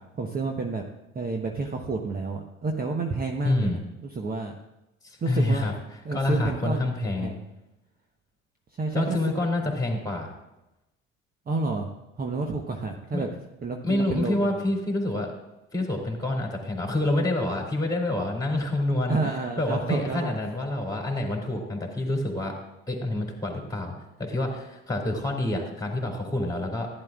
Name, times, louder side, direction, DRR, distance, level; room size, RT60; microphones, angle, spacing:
voice 1, 0.2-0.8 1.1-4.5 5.2-5.7 6.0-6.9 7.2-7.4 8.8-9.2 11.5-11.9 12.2-13.3 13.6-14.7 19.1-20.4, right 3 dB, 25° right, 3 dB, 1.0 m, -30 dB
voice 2, 3.4-3.8 5.0-7.3 8.9-10.3 13.1-13.2 13.8-15.3 15.7-22.5 22.9-23.9 24.2-26.9, left 2 dB, 10° left, 1 dB, 2.9 m, -27 dB
15.5 x 9.8 x 2.4 m, 0.94 s
figure-of-eight pair, 60°, 38 cm